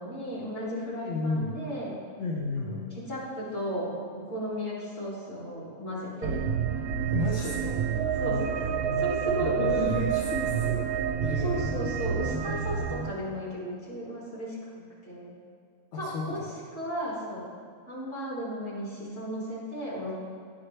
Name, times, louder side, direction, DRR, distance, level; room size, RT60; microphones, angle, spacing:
voice 1, 0.0-2.0 2.6-3.9 4.3-6.4 7.8-7.9 8.2-9.7 11.4-15.3 16.0-16.4 16.7-17.4 17.9-20.1, equal, 40° left, -6 dB, 1.9 m, -35 dB
voice 2, 1.0-1.5 2.2-2.8 7.1-7.8 9.4-10.9 11.2-11.7 15.9-16.2, left 2 dB, 60° left, -2 dB, 1.0 m, -32 dB
sound 1, 6.2-13.1, right 8 dB, 85° right, 1.1 m, -28 dB
11.0 x 4.3 x 3.2 m, 2.2 s
omnidirectional pair, 1.5 m